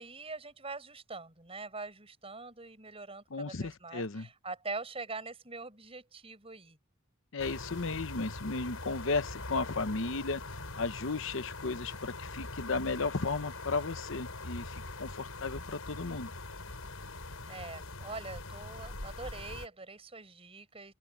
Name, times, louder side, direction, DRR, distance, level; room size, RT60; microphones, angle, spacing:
voice 1, 0.0-6.8 17.4-20.9, right 3 dB, 25° right, 6.3 m, -43 dB
voice 2, 3.3-4.3 7.3-16.3, left 3 dB, 65° left, 0.9 m, -35 dB
sound 1, 7.4-19.7, left 2 dB, 80° left, 5.7 m, -43 dB
open air
head